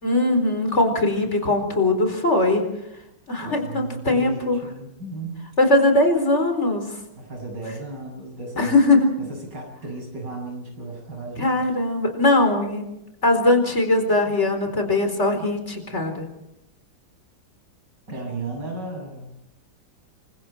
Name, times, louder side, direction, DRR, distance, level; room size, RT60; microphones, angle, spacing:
voice 1, 0.0-2.6 3.3-4.6 5.6-6.9 8.6-9.1 11.4-12.8 13.2-16.3, left 2 dB, 35° left, 5 dB, 4.6 m, -20 dB
voice 2, 3.4-5.5 7.1-8.7 9.5-11.6 18.1-19.3, right 3 dB, 55° right, 1 dB, 8.3 m, -34 dB
29.0 x 24.5 x 4.5 m, 0.86 s
omnidirectional pair, 2.2 m